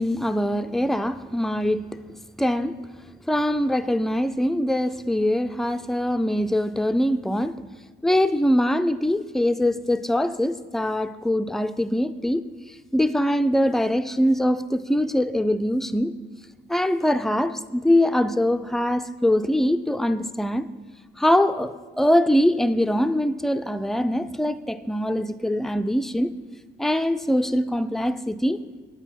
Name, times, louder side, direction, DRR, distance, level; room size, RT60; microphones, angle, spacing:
voice 1, 0.0-1.8 2.4-2.8 3.3-7.6 8.0-16.2 16.7-20.7 21.2-26.3 26.8-28.6, left 1 dB, ahead, 0.4 m, -23 dB
8.2 x 8.2 x 5.8 m
cardioid pair, 90°, 20 cm